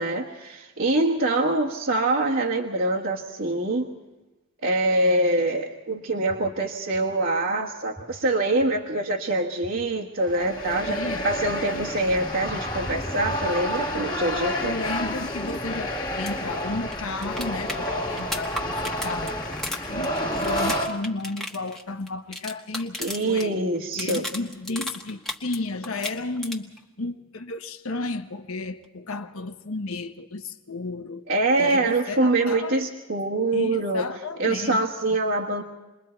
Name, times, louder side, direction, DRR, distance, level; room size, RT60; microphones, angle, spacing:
voice 1, 0.0-3.9 4.6-14.7 23.0-24.2 31.3-34.0 34.4-35.6, right 2 dB, 60° right, -3 dB, 1.5 m, -24 dB
sound 1, 6.3-6.4 6.9-7.0 8.0-8.1 8.6-8.7 9.6-9.7 10.3-10.4 11.3-11.4 11.9-12.0 12.9-13.0 13.6-13.7, right 1 dB, 25° right, 1.1 m, -43 dB
sound 2, 10.2-20.9, equal, 20° left, 1.9 m, -29 dB
voice 2, 10.9-11.3 14.6-19.3 19.8-23.0 23.3-23.6 23.9-26.7 27.0-31.3 31.6-32.8 33.5-34.9, left 3 dB, 85° left, 8 dB, 1.1 m, -33 dB
sound 3, 16.2-16.3 16.6-16.7 16.9-23.5 23.7-25.6 25.8-26.8 28.8-28.9, left 1 dB, ahead, 1.4 m, -34 dB
28.0 x 21.5 x 4.5 m, 1.1 s
head